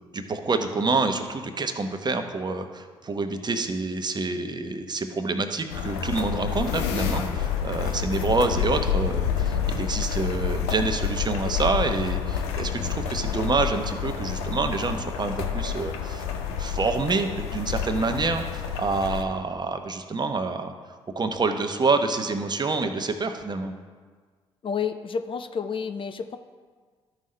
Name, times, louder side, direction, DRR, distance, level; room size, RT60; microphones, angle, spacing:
voice 1, 0.1-16.3 16.6-20.7 21.1-23.7, right 3 dB, 30° right, 7 dB, 0.9 m, -27 dB
sound 1, 5.7-19.2, left 7 dB, 80° left, 0.7 m, -28 dB
voice 2, 24.6-26.4, left 6 dB, 40° left, 9 dB, 0.5 m, -30 dB
13.0 x 5.4 x 3.3 m, 1.5 s
hypercardioid pair, 45°, 14 cm